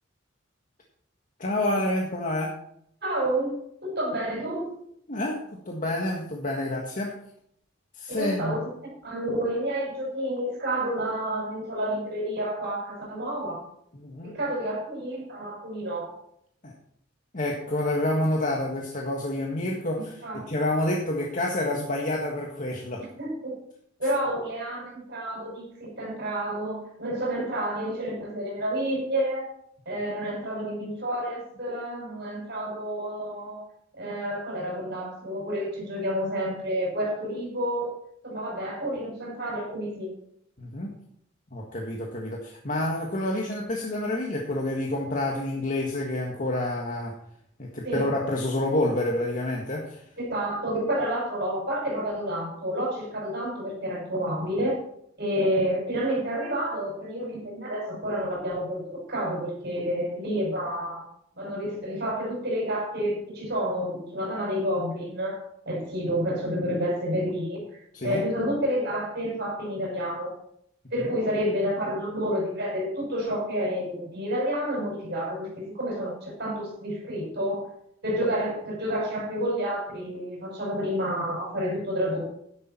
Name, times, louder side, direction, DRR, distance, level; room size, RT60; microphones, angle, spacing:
voice 1, 1.4-2.6 5.1-7.1 7.9-8.6 13.9-14.4 16.6-16.7 17.3-23.1 40.6-40.9 41.5-47.2 47.6-50.1 67.9-68.2, left 1 dB, 40° left, -1 dB, 1.7 m, -28 dB
voice 2, 3.0-4.7 8.1-8.7 9.0-13.6 14.2-16.1 20.0-20.4 23.2-23.6 24.0-29.5 29.9-33.6 33.9-37.9 38.2-40.1 47.8-48.1 50.2-54.8 55.2-61.1 61.3-67.7 68.0-70.3 70.9-77.7 78.0-82.3, equal, 55° right, -1 dB, 6.1 m, -29 dB
12.0 x 10.5 x 4.4 m, 0.70 s
head